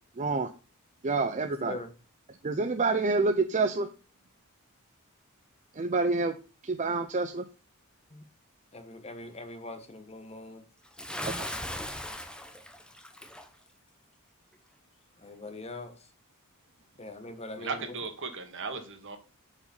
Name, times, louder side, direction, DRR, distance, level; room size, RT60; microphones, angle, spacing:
voice 1, 0.2-0.5 1.0-1.8 2.4-3.9 5.8-6.3 6.6-7.4 11.4-11.5, right 3 dB, 35° right, 0.6 m, -27 dB
voice 2, 8.7-10.6 15.2-15.9 17.0-17.8, left 2 dB, 30° left, 1.4 m, -42 dB
Bathtub (filling or washing) / Splash splatter, 11.0-13.5, left 1 dB, 5° left, 0.8 m, -38 dB
voice 3, 17.6-19.2, right 4 dB, 60° right, 1.6 m, -36 dB
8.2 x 5.1 x 5.4 m
head